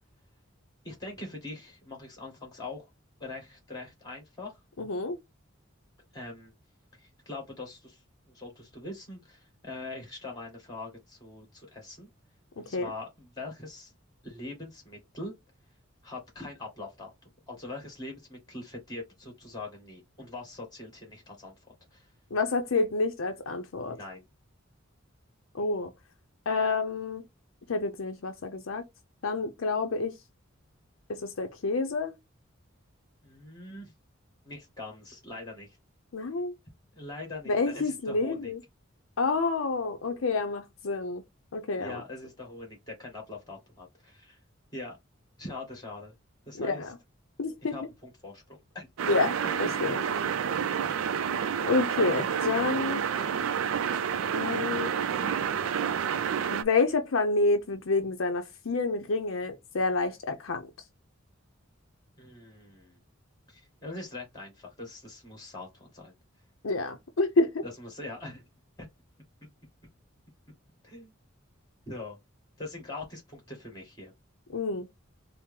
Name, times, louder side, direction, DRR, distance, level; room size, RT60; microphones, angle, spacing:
voice 1, 0.8-2.9 3.2-4.6 6.1-6.5 7.0-12.1 12.6-13.9 14.2-15.3 16.0-21.5 21.9-22.1 23.9-24.2 33.2-33.9 34.4-35.8 36.9-38.5 41.8-44.4 44.7-45.0 45.4-46.1 46.5-46.8 47.6-48.9 49.6-49.7 62.2-63.0 63.5-66.1 67.6-68.4 68.8-68.9 70.8-71.1 71.9-72.2 72.6-74.1, left 2 dB, 20° left, 1.9 m, -42 dB
voice 2, 4.8-5.2 12.6-12.9 22.3-24.0 25.5-25.9 26.5-27.2 27.7-28.8 29.2-30.1 31.1-32.2 36.1-36.5 37.5-38.6 39.2-41.2 41.5-42.0 46.6-46.9 47.4-47.8 49.1-50.0 51.6-53.0 54.3-54.9 56.5-60.7 66.6-67.6 74.5-74.9, left 3 dB, 75° left, 0.6 m, -28 dB
sound 1, 49.0-56.6, right 7 dB, 85° right, 0.4 m, -29 dB
4.4 x 2.0 x 3.6 m
head